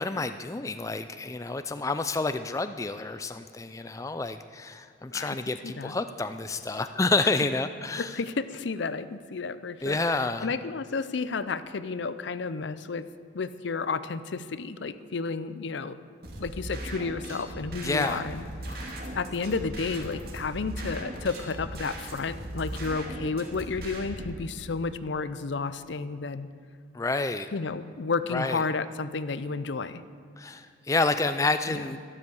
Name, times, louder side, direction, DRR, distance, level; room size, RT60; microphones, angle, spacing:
voice 1, 0.0-8.2 9.8-10.5 17.8-18.2 26.9-27.5 28.3-28.6 30.4-32.0, left 3 dB, 15° left, 10 dB, 0.3 m, -29 dB
voice 2, 5.6-5.9 7.2-7.3 8.0-13.1 13.3-16.0 16.4-26.5 27.5-30.0 31.7-31.8, left 4 dB, 65° left, 14 dB, 0.6 m, -32 dB
sound 1, 16.2-24.3, right 1 dB, 50° right, 2.3 m, -38 dB
12.5 x 12.0 x 7.1 m, 2.3 s
head